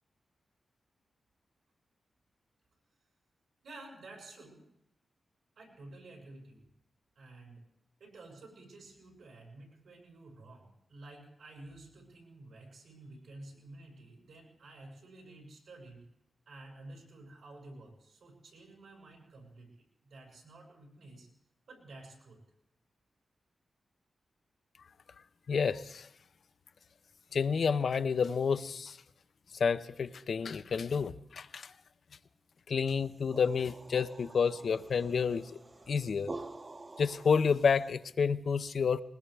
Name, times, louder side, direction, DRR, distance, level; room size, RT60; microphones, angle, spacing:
voice 1, 3.6-4.7 5.6-6.7 7.1-7.6 8.0-16.0 16.5-21.3 21.7-22.4, right 2 dB, 85° right, -2 dB, 6.2 m, -52 dB
voice 2, 25.5-26.1 27.3-29.0 29.6-31.7 32.7-35.6 35.9-36.3 37.0-39.0, left 6 dB, 65° left, 14 dB, 0.5 m, -29 dB
sound 1, 32.9-37.9, right 2 dB, 35° right, 0.8 m, -48 dB
20.5 x 20.5 x 3.4 m, 0.77 s
wide cardioid pair, 110°, 0 cm